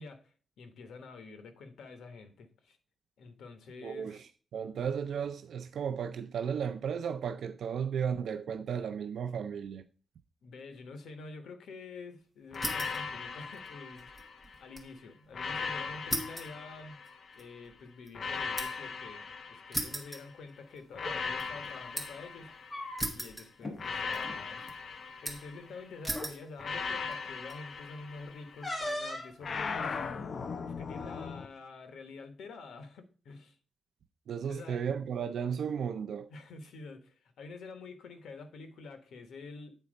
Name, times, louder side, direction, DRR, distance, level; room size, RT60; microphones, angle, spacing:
voice 1, 0.0-2.8 3.2-4.2 10.4-17.0 17.3-22.5 23.1-30.3 30.6-33.6 34.4-34.8 36.3-39.8, left 3 dB, 85° left, 1.1 m, -48 dB
voice 2, 3.8-4.2 4.5-9.9 34.3-36.3, right 7 dB, 65° right, 0.4 m, -34 dB
sound 1, 12.5-14.7 15.3-17.5 18.1-20.3 20.9-23.1 23.8-25.9 26.6-28.8 29.4-31.5, left 5 dB, 45° left, 0.5 m, -39 dB
sound 2, 12.5-13.1 13.4-14.9 15.2-15.3 16.1-18.9 19.7-20.9 21.2-22.3 23.0-23.9 24.1-24.7 25.2-25.6 26.0-26.4 27.1-27.5, right 1 dB, ahead, 1.1 m, -38 dB
sound 3, 20.9-21.2 22.4-23.3 23.6-23.8 24.2-24.4 25.4-25.5 26.1-26.3 28.6-29.4, left 1 dB, 20° left, 1.3 m, -38 dB
8.2 x 4.3 x 5.1 m
wide cardioid pair, 175°, 0 cm